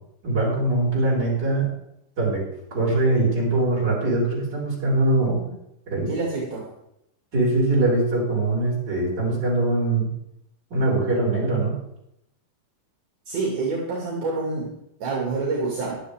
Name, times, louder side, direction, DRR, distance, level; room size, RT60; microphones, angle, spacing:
voice 1, 0.2-1.7 2.2-2.5 2.7-5.4 5.9-6.1 7.3-10.1 10.7-11.8, right 2 dB, 25° right, -5 dB, 6.1 m, -22 dB
voice 2, 6.1-6.7 13.3-14.7 15.0-16.0, right 3 dB, 60° right, -2 dB, 3.7 m, -27 dB
23.5 x 8.2 x 3.6 m, 0.80 s
omnidirectional pair, 4.3 m